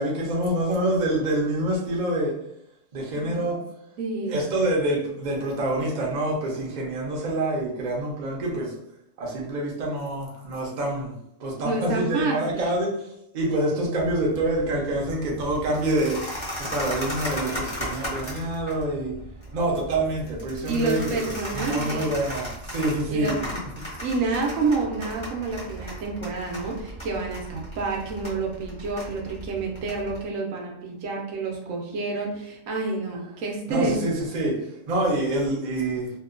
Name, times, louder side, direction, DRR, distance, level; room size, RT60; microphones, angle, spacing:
voice 1, 0.0-2.3 2.9-3.6 4.3-8.8 9.2-11.1 11.4-12.9 13.3-19.1 19.5-23.4 33.7-34.5 34.9-36.1, right 1 dB, 45° right, -2 dB, 0.6 m, -26 dB
voice 2, 4.0-4.5 11.6-12.8 20.7-22.1 23.1-23.4 24.0-34.0, right 3 dB, 80° right, 0 dB, 1.0 m, -29 dB
sound 1, 13.9-30.2, equal, 25° left, 0.7 m, -36 dB
2.8 x 2.2 x 2.4 m, 0.77 s
omnidirectional pair, 1.4 m